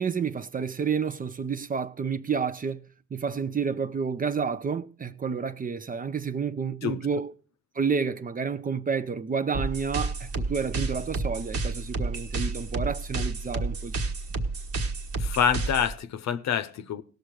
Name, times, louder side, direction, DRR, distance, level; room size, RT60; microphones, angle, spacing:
voice 1, 0.0-7.3 7.7-13.9, right 6 dB, 30° right, 0.5 m, -30 dB
sound 1, 9.5-15.9, right 3 dB, 50° right, 1.3 m, -31 dB
voice 2, 15.2-17.0, left 8 dB, 65° left, 0.8 m, -26 dB
17.0 x 6.5 x 4.8 m
cardioid pair, 90°, 30 cm